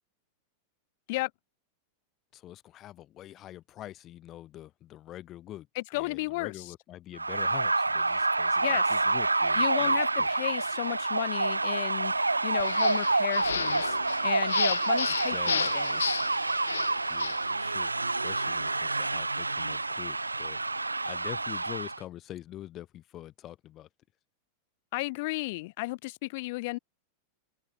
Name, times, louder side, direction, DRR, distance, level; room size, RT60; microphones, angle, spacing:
voice 1, 2.3-5.7 5.9-10.3 15.1-15.5 17.1-20.6 21.0-23.9, left 13 dB, 30° left, 7.3 m, -45 dB
voice 2, 5.7-6.5 8.6-8.8 9.5-16.2 24.9-26.8, left 23 dB, 50° left, 1.4 m, -34 dB
sound 1, 7.2-22.0, right 3 dB, 80° right, 1.5 m, -28 dB
sound 2, 12.6-17.5, left 8 dB, 65° left, 0.7 m, -34 dB
open air
figure-of-eight pair, 90°, 0 cm